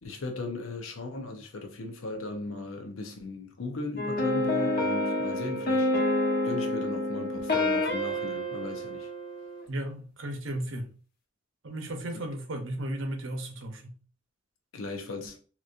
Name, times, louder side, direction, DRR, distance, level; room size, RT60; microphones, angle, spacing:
voice 1, 0.0-5.9 6.4-9.1 12.1-12.3 14.7-15.4, left 2 dB, 85° left, 0.8 m, -37 dB
sound 1, 4.0-9.6, left 1 dB, 50° left, 1.0 m, -28 dB
voice 2, 9.7-10.9 11.6-13.9, right 1 dB, 70° right, 0.8 m, -35 dB
3.9 x 3.0 x 2.5 m
head